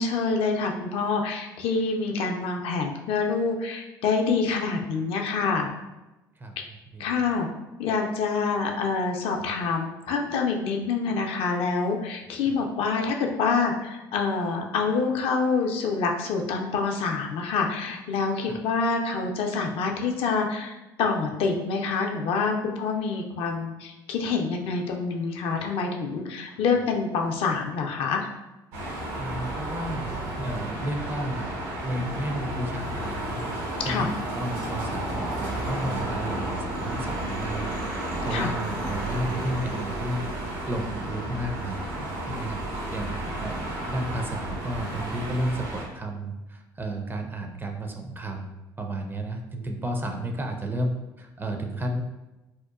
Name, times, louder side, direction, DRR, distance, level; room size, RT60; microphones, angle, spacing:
voice 1, 0.0-5.7 6.6-6.7 7.0-7.5 7.8-20.7 21.0-28.3 33.8-34.1 38.3-38.5, left 4 dB, 55° left, 2 dB, 0.4 m, -26 dB
voice 2, 6.4-7.1 12.4-12.5 18.5-18.6 26.5-26.6 29.2-31.6 31.8-33.4 33.8-40.3 40.6-48.5 48.8-52.0, right 1 dB, 20° right, 3 dB, 0.4 m, -32 dB
sound 1, 28.7-45.8, right 1 dB, 70° right, 0.7 m, -32 dB
2.8 x 2.2 x 2.3 m, 1.0 s
hypercardioid pair, 60°, 11 cm